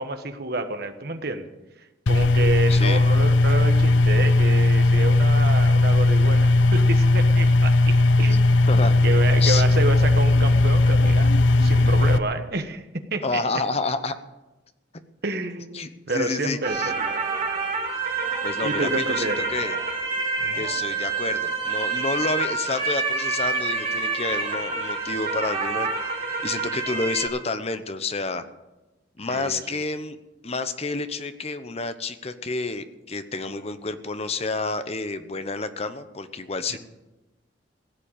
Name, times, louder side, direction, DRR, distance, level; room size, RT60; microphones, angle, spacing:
voice 1, 0.0-1.5 2.1-8.8 9.0-11.3 11.6-13.4 15.2-17.0 18.6-19.5 20.4-20.6 29.2-29.6 36.7-36.8, right 2 dB, 55° right, 7 dB, 1.3 m, -29 dB
sound 1, 2.1-12.2, left 2 dB, 85° left, 0.7 m, -17 dB
voice 2, 2.7-3.0 8.7-9.0 9.4-9.6 13.2-14.2 15.7-16.9 18.4-19.8 20.5-26.0 26.4-28.4 29.2-30.2 30.4-36.8, left 3 dB, 35° left, 11 dB, 0.9 m, -29 dB
sound 2, 16.6-27.3, right 4 dB, 40° right, 4.4 m, -27 dB
16.5 x 7.6 x 9.0 m, 1.0 s
head